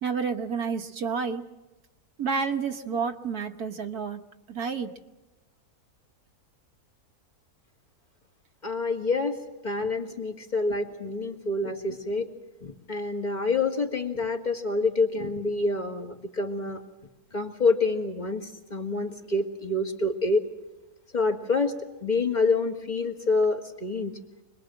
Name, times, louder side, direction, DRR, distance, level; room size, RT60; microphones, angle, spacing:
voice 1, 0.0-1.4 2.2-4.2 4.5-4.9, right 5 dB, 70° right, 5 dB, 1.8 m, -29 dB
voice 2, 8.6-9.4 9.6-12.3 12.6-16.8 17.3-20.4 21.1-21.7 22.0-24.1, left 3 dB, 30° left, 4 dB, 2.1 m, -27 dB
26.0 x 21.0 x 7.6 m, 1.0 s
omnidirectional pair, 1.7 m